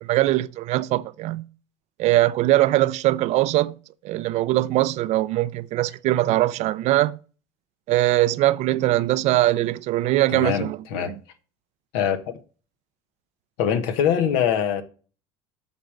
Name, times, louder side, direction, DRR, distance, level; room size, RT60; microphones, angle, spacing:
voice 1, 0.0-1.5 2.0-3.8 4.0-7.2 7.9-11.2, right 16 dB, 60° right, 0.5 m, -21 dB
voice 2, 10.3-11.1 11.9-12.4 13.6-14.8, left 8 dB, 75° left, 1.2 m, -23 dB
8.0 x 3.8 x 6.3 m
supercardioid pair, 85°, 13 cm